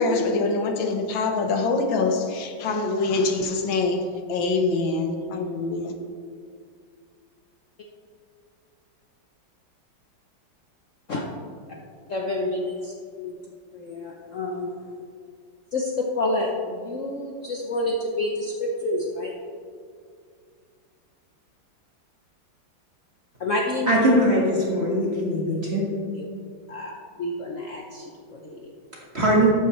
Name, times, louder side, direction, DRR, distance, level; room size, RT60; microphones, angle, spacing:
voice 1, 0.0-5.9, left 3 dB, 80° left, 5 dB, 1.8 m, -24 dB
voice 2, 12.1-12.9 13.2-13.3 13.7-14.9 15.7-19.3 23.4-24.2 26.2-26.3 26.7-28.7, left 2 dB, 55° left, -1 dB, 0.9 m, -28 dB
voice 3, 23.9-24.4 24.7-25.8 29.1-29.5, right 1 dB, 35° right, -4 dB, 1.7 m, -20 dB
13.0 x 8.6 x 3.1 m, 2.2 s
omnidirectional pair, 2.1 m